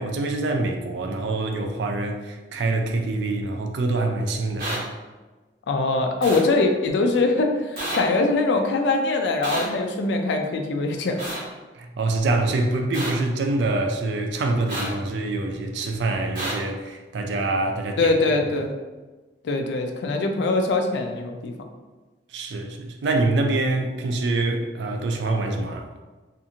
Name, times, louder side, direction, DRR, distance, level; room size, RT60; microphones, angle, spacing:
voice 1, 0.0-4.9 11.8-18.1 22.3-25.9, right 2 dB, 75° right, 4 dB, 0.4 m, -25 dB
sound 1, 4.6-4.8 6.2-6.4 7.8-8.0 9.4-9.6 11.2-11.4 12.9-13.1 14.7-14.9 16.4-16.5, right 1 dB, 55° right, 1.1 m, -29 dB
voice 2, 5.7-11.3 18.0-18.7 19.4-21.5, left 3 dB, 75° left, 4 dB, 0.4 m, -22 dB
2.5 x 2.4 x 2.8 m, 1.2 s
head